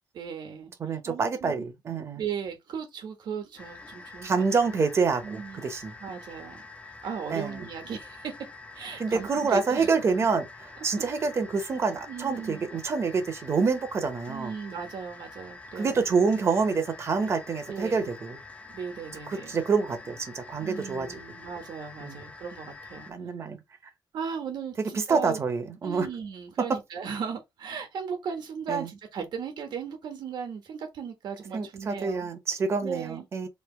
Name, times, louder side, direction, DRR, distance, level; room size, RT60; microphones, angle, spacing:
voice 1, 0.1-0.7 1.1-1.7 2.1-4.4 5.2-5.7 6.0-6.6 7.0-8.4 8.7-9.9 11.0-11.1 12.1-12.7 14.3-16.0 17.7-18.1 18.7-19.6 20.6-23.1 23.4-23.5 24.1-25.4 25.8-32.3 32.8-33.2, right 6 dB, 70° right, 1.3 m, -37 dB
voice 2, 0.8-2.2 4.2-5.9 7.3-7.7 9.0-10.5 10.8-14.6 15.7-18.4 19.3-21.2 22.0-22.2 23.1-23.6 24.9-26.1 28.7-28.9 31.5-33.5, right 4 dB, 35° right, 0.8 m, -27 dB
sound 1, 3.6-23.1, left 3 dB, 15° left, 0.6 m, -46 dB
3.2 x 2.7 x 4.4 m
wide cardioid pair, 180°, 8 cm